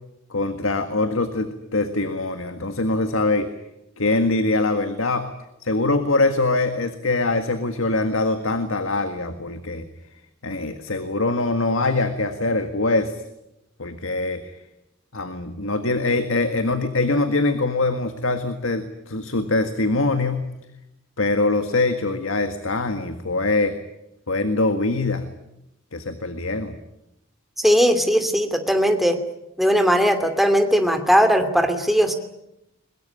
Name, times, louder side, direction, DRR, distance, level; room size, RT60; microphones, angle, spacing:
voice 1, 0.3-3.5 4.0-5.3 5.6-9.9 10.4-13.2 13.8-14.6 15.1-20.5 21.2-23.7 24.3-25.3 25.9-26.8, left 2 dB, 80° left, 8 dB, 1.8 m, -23 dB
voice 2, 27.6-29.2 29.6-32.1, equal, ahead, 6 dB, 2.7 m, -18 dB
22.5 x 21.5 x 10.0 m, 0.85 s
head